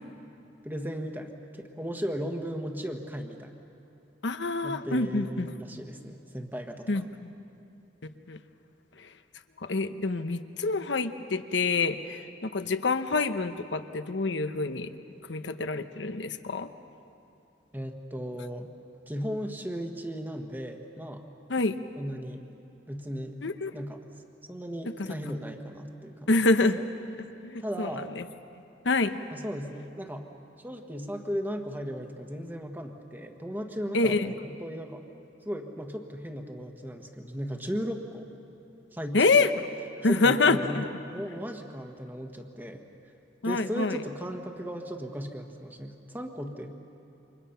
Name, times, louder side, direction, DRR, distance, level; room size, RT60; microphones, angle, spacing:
voice 1, 0.6-3.5 4.6-7.0 17.7-18.7 19.1-21.2 22.0-22.4 22.9-23.4 23.7-24.0 24.5-26.3 27.6-28.1 29.3-30.3 30.6-35.0 35.4-38.3 38.9-39.3 40.1-42.9 43.4-46.7, equal, 10° right, 4 dB, 1.4 m, -36 dB
voice 2, 4.2-5.5 6.9-7.3 8.3-8.4 9.0-9.1 9.6-14.9 15.3-16.7 21.5-21.8 23.4-23.8 25.0-25.1 26.3-26.8 27.4-28.2 28.8-29.2 33.9-34.3 39.1-39.7 40.0-40.9 43.4-44.0, left 3 dB, 85° left, 9 dB, 0.9 m, -26 dB
29.0 x 25.5 x 5.7 m, 2.8 s
head